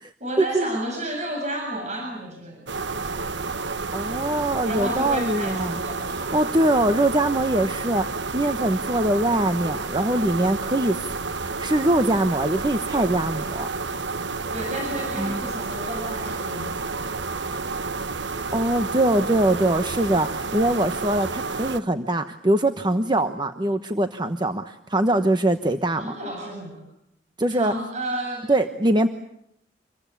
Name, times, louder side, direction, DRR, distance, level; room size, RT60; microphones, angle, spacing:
voice 1, 0.2-2.7 4.6-6.2 14.5-16.7 26.0-26.8 27.5-28.5, right 1 dB, 40° right, 1 dB, 7.5 m, -31 dB
sound 1, 2.7-21.8, right 4 dB, 75° right, 1.1 m, -30 dB
voice 2, 3.9-13.7 15.2-15.4 17.5-17.6 18.5-26.1 27.4-27.7 28.5-29.1, right 1 dB, 25° right, 8 dB, 1.1 m, -23 dB
27.5 x 23.0 x 8.5 m, 0.76 s
head